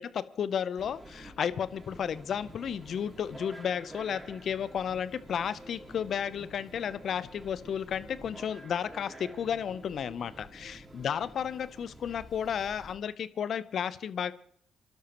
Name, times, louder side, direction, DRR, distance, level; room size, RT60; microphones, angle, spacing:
voice 1, 0.0-14.3, left 8 dB, 65° left, 17 dB, 0.6 m, -33 dB
sound 1, 0.8-13.0, right 1 dB, 20° right, 3.8 m, -49 dB
28.0 x 12.0 x 3.0 m, 0.64 s
hypercardioid pair, 50°, 0 cm